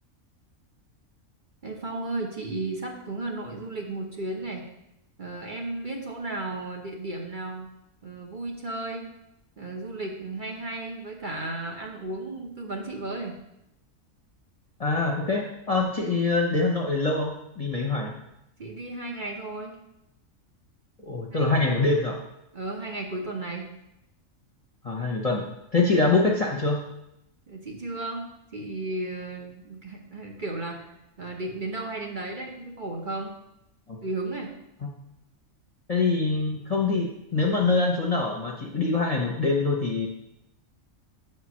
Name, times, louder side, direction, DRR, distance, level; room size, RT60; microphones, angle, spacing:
voice 1, 1.6-4.7 5.2-7.7 8.0-9.1 9.6-13.4 18.6-19.8 21.3-21.6 22.5-23.7 27.5-28.2 28.5-30.9 31.2-33.3 34.0-34.5, right 2 dB, 40° right, 0 dB, 1.0 m, -34 dB
voice 2, 14.8-18.1 21.0-22.1 24.8-25.4 25.7-26.8 33.9-34.0 35.9-40.1, left 3 dB, 30° left, 0 dB, 0.9 m, -24 dB
7.8 x 4.4 x 6.2 m, 0.84 s
omnidirectional pair, 1.4 m